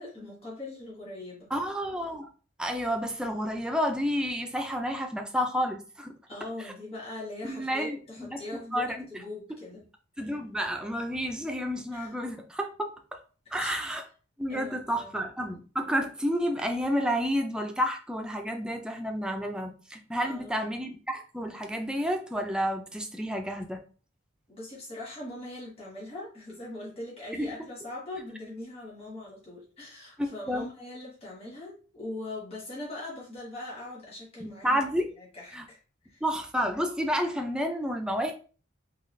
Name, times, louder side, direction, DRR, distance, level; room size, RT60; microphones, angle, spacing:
voice 1, 0.0-1.5 6.3-9.9 10.2-10.3 11.9-12.1 13.6-13.7 14.5-15.3 20.2-20.8 24.5-34.8 35.2-35.8 36.0-36.2, left 2 dB, 30° left, -5 dB, 1.5 m, -41 dB
voice 2, 1.5-2.3 2.6-6.1 6.6-6.7 7.4-8.4 8.7-9.0 10.2-13.2 13.5-14.0 14.4-23.8 27.3-27.5 30.5-30.7 34.4-35.1 35.5-35.7 36.2-38.3, equal, 5° right, 3 dB, 0.4 m, -30 dB
3.8 x 2.3 x 3.2 m, 0.38 s
head